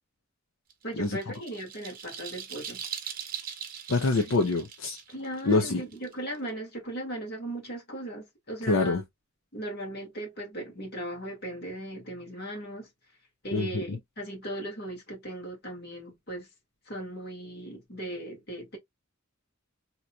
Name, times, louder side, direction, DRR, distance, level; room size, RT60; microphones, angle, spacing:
sound 1, 0.7-6.5, right 8 dB, 45° right, 0.8 m, -41 dB
voice 1, 0.8-2.8 5.1-9.0 9.5-12.9 13.4-16.5 16.9-18.8, right 1 dB, 50° left, 2.0 m, -38 dB
voice 2, 3.9-5.0 5.4-5.8 8.7-9.0 13.5-14.0, left 3 dB, 70° left, 0.6 m, -25 dB
3.9 x 2.9 x 2.3 m
head